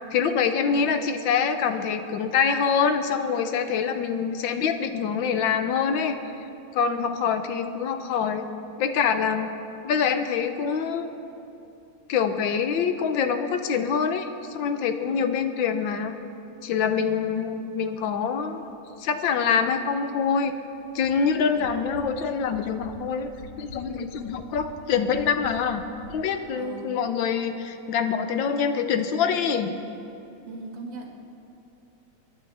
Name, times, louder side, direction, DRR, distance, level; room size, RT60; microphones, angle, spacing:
voice 1, 0.1-6.2 6.7-8.5 8.8-9.5 9.8-11.1 12.1-16.1 16.6-18.7 19.0-20.6 20.9-23.3 23.6-25.8 26.1-29.7, left 6 dB, 85° left, 8 dB, 1.5 m, -25 dB
voice 2, 0.7-1.1 6.9-7.3 15.1-15.4 17.0-17.4 21.4-21.8 26.5-27.0 30.5-31.1, right 3 dB, 90° right, -1 dB, 2.5 m, -40 dB
sound 1, 17.9-26.1, right 1 dB, 45° right, 2.8 m, -48 dB
25.5 x 10.5 x 3.4 m, 2.8 s
omnidirectional pair, 2.1 m